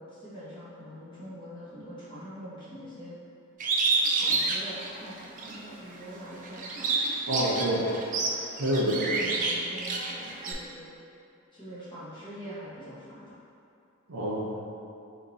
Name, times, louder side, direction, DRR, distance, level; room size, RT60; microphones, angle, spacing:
voice 1, 0.0-3.1 4.2-6.9 8.8-10.9 11.5-13.4, equal, 20° left, -11 dB, 1.1 m, -44 dB
Bird, 3.6-5.6 6.0-10.5, right 3 dB, 35° right, 0.3 m, -28 dB
voice 2, 7.3-7.9 8.6-9.1 14.1-14.6, equal, 70° right, -5 dB, 0.8 m, -27 dB
3.8 x 2.9 x 3.9 m, 2.7 s
head